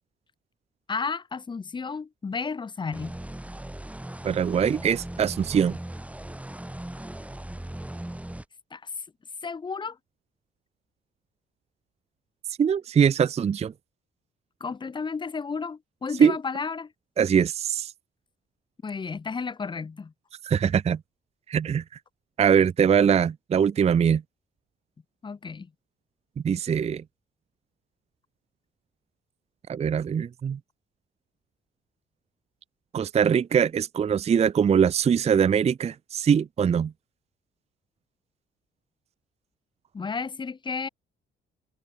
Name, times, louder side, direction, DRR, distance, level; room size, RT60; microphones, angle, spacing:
voice 1, 0.9-3.2 8.7-8.9 9.4-10.0 14.6-16.9 18.8-20.1 25.2-25.7 39.9-40.9, left 5 dB, 25° left, 0.6 m, -32 dB
sound 1, 2.9-8.4, right 1 dB, 5° right, 3.6 m, -38 dB
voice 2, 4.2-5.8 12.6-13.7 16.2-16.4 17.2-17.9 20.4-21.0 21.5-21.8 22.4-24.2 26.4-27.0 29.7-30.6 32.9-36.9, right 7 dB, 30° right, 0.5 m, -22 dB
cardioid pair, 90°, 20 cm